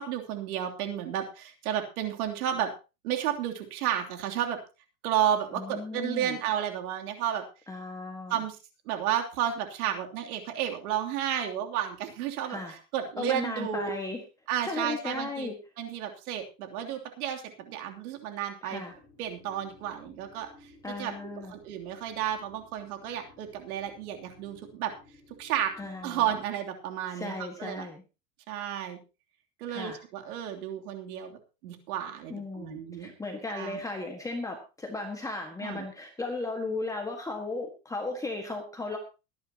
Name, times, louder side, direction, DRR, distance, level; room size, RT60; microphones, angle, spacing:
voice 1, 0.0-2.7 3.0-4.6 5.0-7.4 8.3-8.6 8.8-12.6 12.9-13.9 14.5-15.5 15.8-18.8 19.2-21.1 21.5-24.9 25.4-25.7 26.0-27.9 28.5-29.0 29.6-33.1 33.5-33.8 35.6-35.8, right 10 dB, 60° right, 3 dB, 3.2 m, -32 dB
voice 2, 5.5-6.4 7.7-8.4 12.5-12.8 13.2-14.2 14.6-15.5 18.6-18.9 20.8-21.5 25.8-26.3 27.1-28.0 29.7-30.0 32.3-39.0, left 3 dB, 5° left, 2 dB, 1.6 m, -36 dB
sound 1, 18.9-26.4, left 3 dB, 55° left, 7.1 m, -57 dB
22.5 x 10.5 x 2.9 m, 0.30 s
supercardioid pair, 155°, 49 cm